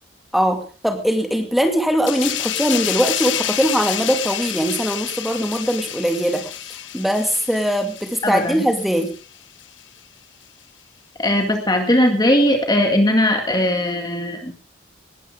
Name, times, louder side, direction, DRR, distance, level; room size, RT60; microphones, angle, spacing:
voice 1, 0.3-9.1, equal, ahead, 5 dB, 2.4 m, -21 dB
sound 1, 2.1-9.2 9.6-9.8, left 12 dB, 70° left, 1.1 m, -28 dB
voice 2, 8.2-8.5 11.2-14.5, left 1 dB, 20° left, 4 dB, 2.1 m, -18 dB
19.5 x 13.5 x 3.7 m, 0.37 s
head